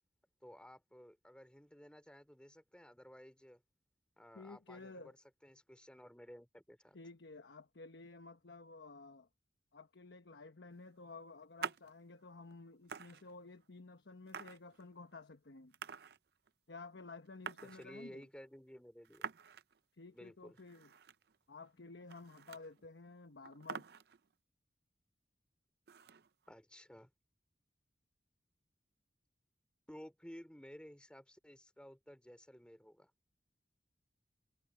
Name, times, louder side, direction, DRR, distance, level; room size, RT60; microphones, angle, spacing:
voice 1, 0.4-3.6 4.2-5.2 5.4-7.0 17.6-19.3 20.1-20.6 26.5-27.1 29.9-33.1, equal, 5° left, 2.7 m, -55 dB
voice 2, 4.3-5.1 6.9-9.3 9.7-15.7 16.7-18.3 20.0-20.9 21.5-23.8, left 3 dB, 90° left, 1.1 m, -53 dB
sound 1, 11.6-11.9 12.5-12.6 12.8-13.6 14.3-15.2 15.7-16.5 16.8-16.9 17.0-18.3 19.0-19.8 20.1-20.2 20.6-21.4 21.6-21.7 22.0-22.8 23.1-23.2 23.4-24.3 25.9-26.5, right 6 dB, 65° right, 0.6 m, -47 dB
head